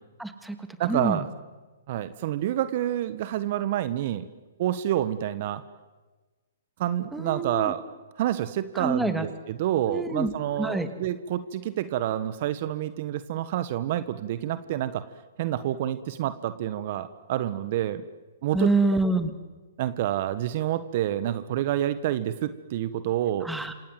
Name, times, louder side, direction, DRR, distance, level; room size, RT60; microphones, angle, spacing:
voice 1, 0.2-0.6 0.9-1.2 7.1-7.7 8.8-9.3 9.9-10.3 10.6-10.9 18.5-19.3 23.4-23.7, right 2 dB, 5° right, 8 dB, 2.5 m, -26 dB
voice 2, 0.8-1.3 1.9-4.3 4.6-5.6 6.8-7.8 8.2-15.0 15.4-18.0 18.4-19.0 19.8-23.5, right 12 dB, 50° right, 13 dB, 1.4 m, -28 dB
27.0 x 27.0 x 7.8 m, 1.2 s
hypercardioid pair, 125°, 0 cm